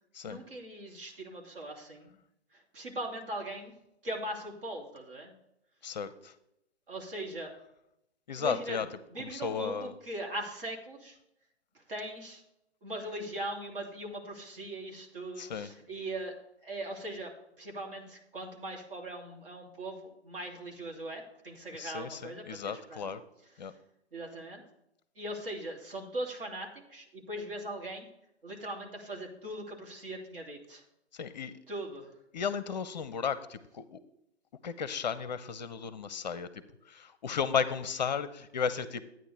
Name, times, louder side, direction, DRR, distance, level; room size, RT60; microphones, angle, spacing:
voice 1, 0.2-2.1 2.5-3.7 4.0-5.3 6.9-7.5 8.4-8.8 9.1-11.2 11.7-12.4 12.8-16.3 16.6-23.0 23.5-23.8 24.1-24.6 25.1-28.1 28.4-30.8 31.7-32.1, right 1 dB, 55° right, 1 dB, 2.8 m, -40 dB
voice 2, 5.8-6.3 8.3-8.9 9.2-9.9 15.4-15.7 21.8-23.2 23.6-23.7 31.1-31.6 32.3-34.0 34.6-39.0, left 6 dB, 40° left, 15 dB, 0.6 m, -34 dB
13.0 x 9.1 x 3.4 m, 0.81 s
figure-of-eight pair, 130°, 33 cm